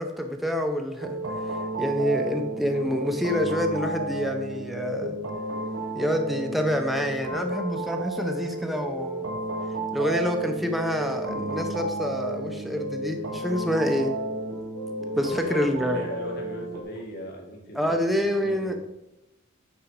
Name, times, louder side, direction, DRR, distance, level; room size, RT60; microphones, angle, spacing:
voice 1, 0.0-5.2 5.9-9.2 9.9-14.1 15.2-16.0 17.7-18.7, equal, ahead, 4 dB, 0.6 m, -27 dB
sound 1, 1.0-16.8, right 2 dB, 85° right, 1.1 m, -32 dB
voice 2, 15.3-18.7, equal, 50° left, 0 dB, 1.4 m, -39 dB
8.8 x 4.2 x 4.6 m, 0.91 s
head